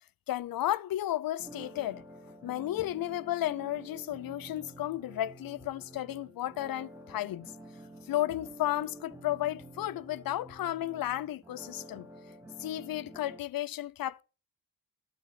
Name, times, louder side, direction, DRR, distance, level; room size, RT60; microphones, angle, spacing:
voice 1, 0.3-2.0 2.4-7.5 8.1-12.1 12.6-14.2, left 14 dB, 60° left, 0.5 m, -33 dB
sound 1, 1.4-13.4, right 1 dB, 5° right, 1.1 m, -49 dB
12.0 x 4.1 x 7.5 m
wide cardioid pair, 140°, 41 cm